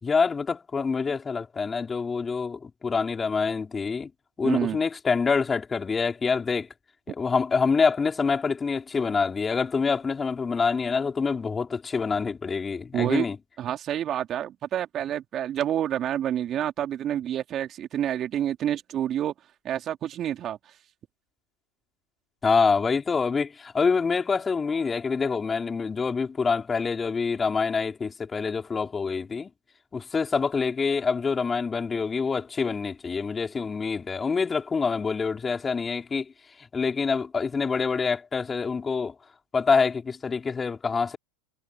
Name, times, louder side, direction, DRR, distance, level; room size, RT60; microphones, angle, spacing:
voice 1, 0.0-4.1 4.4-6.7 7.2-13.4 22.4-29.5 29.9-36.3 36.7-39.1 39.5-41.2, left 5 dB, 20° left, 4.4 m, -26 dB
voice 2, 4.4-4.8 12.9-13.3 13.6-19.3 19.6-20.7, right 10 dB, 35° right, 2.9 m, -28 dB
hypercardioid pair, 100°, 0 cm